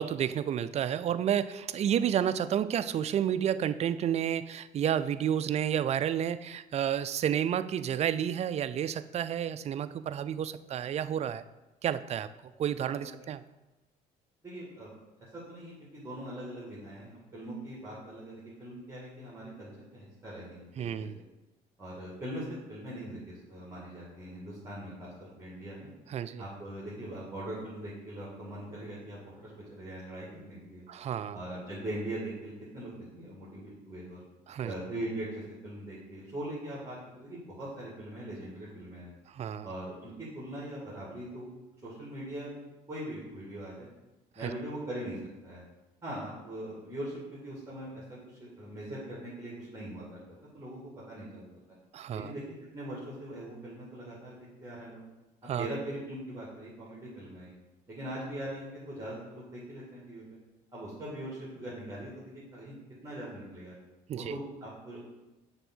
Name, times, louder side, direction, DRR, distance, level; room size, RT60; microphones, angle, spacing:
voice 1, 0.0-11.4 11.8-13.4 20.8-21.2 26.1-26.4 30.9-31.4 34.5-34.7 39.3-39.7 44.4-44.5 51.9-52.3 55.5-55.7 64.1-64.4, right 9 dB, 40° right, 12 dB, 0.4 m, -30 dB
voice 2, 14.4-14.9 15.3-21.1 21.8-25.9 26.4-30.8 31.3-34.2 34.6-39.1 39.6-41.5 41.8-42.5 42.9-43.9 44.4-45.2 45.4-45.6 46.0-50.2 50.5-51.5 52.1-52.4 52.7-55.0 55.4-57.5 57.9-60.2 60.7-62.7 63.0-63.7 64.1-65.0, right 1 dB, 15° right, -7 dB, 2.1 m, -41 dB
7.0 x 3.6 x 6.1 m, 1.0 s
cardioid pair, 110°, 17 cm